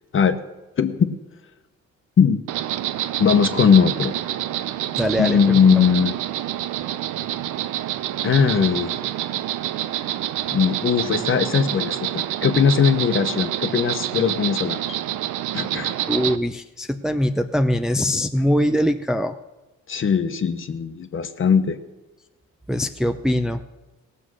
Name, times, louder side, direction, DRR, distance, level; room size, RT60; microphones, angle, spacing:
voice 1, 0.8-1.2 2.2-2.4 3.2-4.1 5.2-6.2 8.2-8.9 10.5-15.0 15.5-15.9 19.9-21.8, left 6 dB, 45° left, 9 dB, 1.0 m, -19 dB
Insect, 2.5-16.4, right 13 dB, 85° right, 0.6 m, -27 dB
voice 2, 5.0-5.6 16.1-19.4 22.7-23.6, equal, ahead, 7 dB, 0.5 m, -22 dB
17.5 x 7.0 x 6.3 m, 1.1 s
cardioid pair, 90°, 30 cm